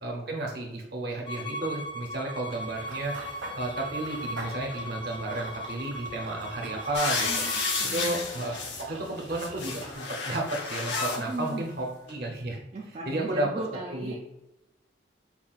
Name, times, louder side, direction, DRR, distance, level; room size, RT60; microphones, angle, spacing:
voice 1, 0.0-3.1 3.5-7.4 7.9-12.6 13.0-13.5 13.9-14.3, right 2 dB, 50° right, 0 dB, 0.7 m, -32 dB
Bowed string instrument, 1.3-7.8, equal, 25° left, 0.6 m, -38 dB
Run / Bird vocalization bird call bird song, 2.5-10.0, right 2 dB, 85° right, 1.4 m, -44 dB
sound 1, 6.9-8.8 9.2-11.2 12.1-12.2, left 4 dB, 65° left, 0.7 m, -31 dB
voice 2, 7.2-8.4 11.2-11.6 12.7-14.2, right 2 dB, 35° right, -2 dB, 0.4 m, -37 dB
5.6 x 2.4 x 2.4 m, 0.92 s
head